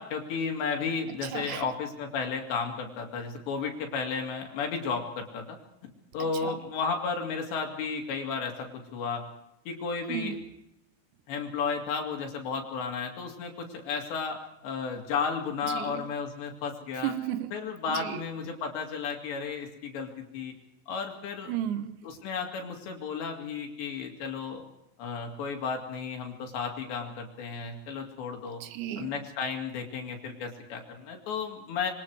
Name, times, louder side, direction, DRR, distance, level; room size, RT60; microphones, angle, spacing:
voice 1, 0.0-5.6 6.1-9.2 9.7-10.4 11.3-17.1 17.5-20.5 20.9-21.5 22.0-24.6 25.0-28.6 29.0-31.9, left 5 dB, 65° left, 4.3 m, -33 dB
voice 2, 1.2-1.7 6.4-6.6 10.1-10.4 15.7-16.0 17.0-17.5 17.9-18.2 21.5-21.9 28.6-29.1, right 11 dB, 75° right, 3.1 m, -33 dB
27.0 x 23.0 x 4.7 m
omnidirectional pair, 5.5 m